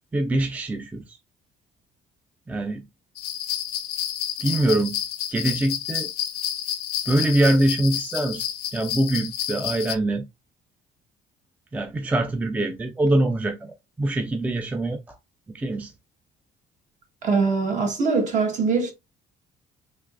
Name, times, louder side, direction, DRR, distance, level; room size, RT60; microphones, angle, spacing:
voice 1, 0.1-1.2 2.5-2.9 4.4-5.0 5.3-6.1 7.1-10.3 11.7-15.2 15.5-15.9, right 1 dB, 10° right, 0.3 m, -24 dB
sound 1, 3.2-10.0, left 10 dB, 70° left, 0.5 m, -30 dB
voice 2, 17.2-18.9, right 4 dB, 50° right, 1.2 m, -22 dB
3.4 x 3.0 x 2.4 m
cardioid pair, 110°, 17 cm